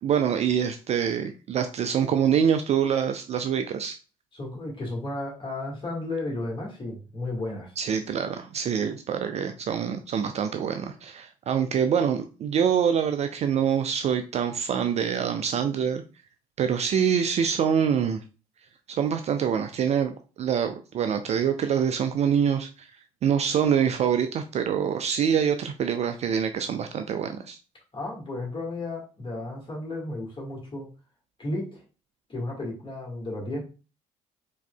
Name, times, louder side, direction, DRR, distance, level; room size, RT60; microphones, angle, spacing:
voice 1, 0.0-4.0 7.8-16.0 16.6-18.2 18.9-20.1 20.4-22.9 23.2-27.6, right 8 dB, 35° right, 8 dB, 0.4 m, -25 dB
voice 2, 4.3-7.7 27.9-30.9 31.4-31.8 32.3-33.6, left 2 dB, 25° left, -1 dB, 1.8 m, -33 dB
4.6 x 2.7 x 2.3 m, 0.33 s
figure-of-eight pair, 50°, 19 cm